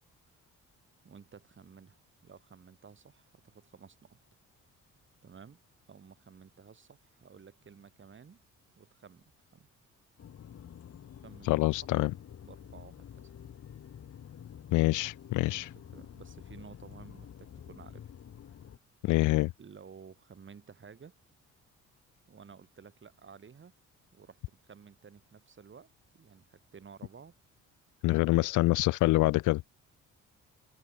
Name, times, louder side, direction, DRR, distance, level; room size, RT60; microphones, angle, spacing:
voice 1, 1.0-4.2 5.2-5.6 5.9-8.4 8.8-9.7 11.2-11.7 12.4-13.3 15.4-15.6 15.9-18.1 18.5-18.6 19.6-21.1 22.3-23.7 24.1-25.9 26.1-27.3 28.3-28.8, right 6 dB, 40° right, 3.9 m, -53 dB
sound 1, 10.2-18.8, left 9 dB, 55° left, 2.0 m, -49 dB
voice 2, 11.5-12.1 14.7-15.7 19.0-19.5 28.0-29.6, left 19 dB, 80° left, 0.5 m, -26 dB
cardioid pair, 90°, 30 cm